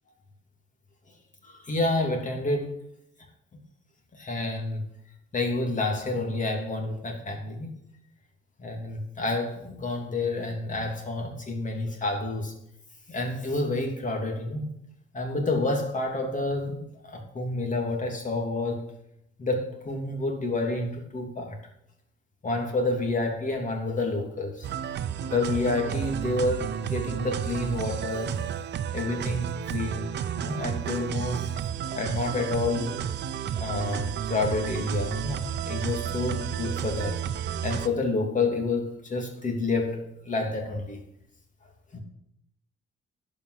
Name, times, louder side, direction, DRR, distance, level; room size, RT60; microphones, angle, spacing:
voice 1, 1.4-2.8 4.1-4.8 5.3-7.7 8.6-12.5 13.1-14.6 15.1-18.9 19.4-21.6 22.4-24.8 25.3-28.3 28.9-30.1 30.3-31.4 31.9-33.0 33.6-37.2 37.6-40.0 40.2-41.0 41.9-42.0, left 2 dB, 40° left, 3 dB, 3.1 m, -29 dB
sound 1, 24.6-37.9, right 9 dB, 60° right, 0.8 m, -32 dB
11.5 x 5.6 x 8.3 m, 0.77 s
cardioid pair, 90°, 20 cm